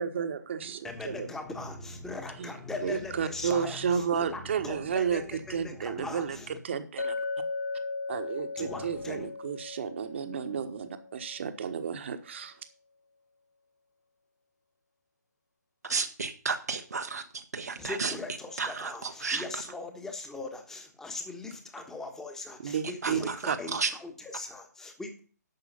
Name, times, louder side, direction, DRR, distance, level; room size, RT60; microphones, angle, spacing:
voice 1, 0.0-1.3 2.4-2.5 2.8-5.2 5.5-6.4 6.6-7.2 8.1-12.6 22.6-23.6, right 7 dB, 40° right, 1.3 m, -32 dB
voice 2, 0.8-6.6 8.6-9.3 17.8-25.2, left 3 dB, 5° left, 1.3 m, -40 dB
Chink clink, 7.0-11.4, left 3 dB, 60° left, 1.3 m, -37 dB
voice 3, 15.8-18.1 18.6-19.6 23.0-23.9, right 4 dB, 60° right, 1.0 m, -33 dB
11.0 x 6.9 x 5.5 m
figure-of-eight pair, 140°, 10 cm